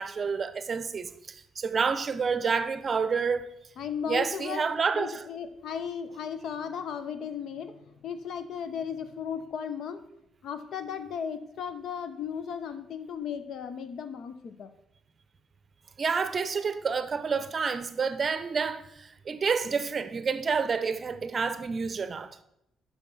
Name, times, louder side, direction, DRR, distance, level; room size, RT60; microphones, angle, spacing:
voice 1, 0.0-3.4 4.1-5.2 16.0-22.4, right 5 dB, 40° right, 0.6 m, -29 dB
voice 2, 3.8-4.6 4.9-10.0 10.4-14.7, left 7 dB, 70° left, 0.7 m, -36 dB
7.1 x 5.8 x 5.6 m
cardioid pair, 90°, 0 cm